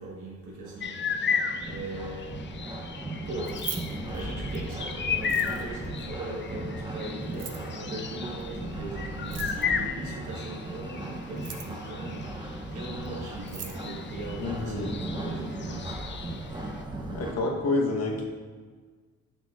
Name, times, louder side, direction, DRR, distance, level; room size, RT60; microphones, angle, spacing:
voice 1, 0.0-2.4 3.2-3.6 4.0-16.5, right 2 dB, 90° right, -5 dB, 1.5 m, -40 dB
sound 1, 0.6-17.3, right 2 dB, 15° right, 0.8 m, -37 dB
sound 2, 0.8-16.8, left 6 dB, 40° left, 0.5 m, -35 dB
Keys jangling, 3.3-4.7 5.2-5.9 7.2-7.7 9.2-9.9 11.2-11.9 13.0-13.1 13.4-13.8, right 8 dB, 55° right, 0.8 m, -40 dB
voice 2, 14.4-14.9 17.1-18.2, left 2 dB, 55° left, 0 dB, 1.2 m, -28 dB
7.0 x 5.9 x 2.5 m, 1.5 s
cardioid pair, 90°, 30 cm